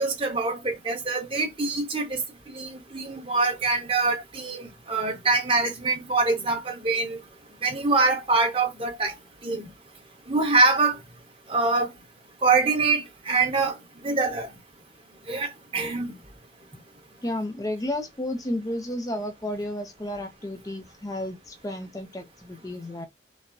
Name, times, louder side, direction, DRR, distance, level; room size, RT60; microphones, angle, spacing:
voice 1, 0.0-2.2 2.5-7.2 7.6-9.1 9.4-9.7 10.3-11.0 11.5-11.9 12.4-13.8 14.0-14.5 15.3-16.1, right 3 dB, 30° right, 1.1 m, -24 dB
voice 2, 17.2-23.1, left 1 dB, 20° left, 0.4 m, -32 dB
5.2 x 2.1 x 2.5 m
head